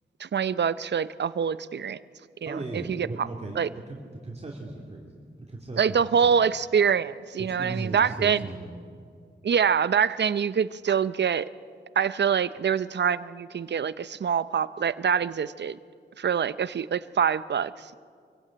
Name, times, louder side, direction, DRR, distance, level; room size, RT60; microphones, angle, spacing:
voice 1, 0.2-2.0 2.4-3.1 3.6-3.7 5.8-8.4 9.4-11.5 12.0-15.8 16.2-18.0, right 7 dB, 60° right, 16 dB, 0.6 m, -25 dB
voice 2, 2.4-4.0 4.2-5.2 5.5-6.3 7.5-8.7, right 2 dB, 30° right, -1 dB, 2.4 m, -37 dB
23.5 x 16.0 x 8.7 m, 2.2 s
cardioid pair, 75°, 20 cm